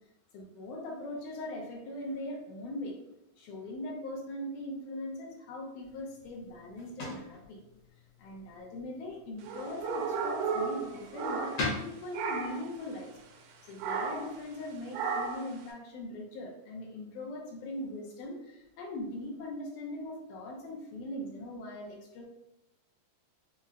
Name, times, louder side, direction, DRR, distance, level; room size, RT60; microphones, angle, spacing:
voice 1, 0.3-3.0 3.4-7.6 8.2-13.1 13.4-22.2, left 1 dB, 80° left, -1 dB, 2.0 m, -40 dB
sound 1, 5.8-15.0, left 3 dB, 60° left, 1.6 m, -44 dB
sound 2, 9.4-11.8 12.1-12.7 13.8-14.4 14.9-15.5, right 5 dB, 85° right, 2.2 m, -34 dB
5.5 x 2.1 x 2.5 m, 0.83 s
omnidirectional pair, 3.8 m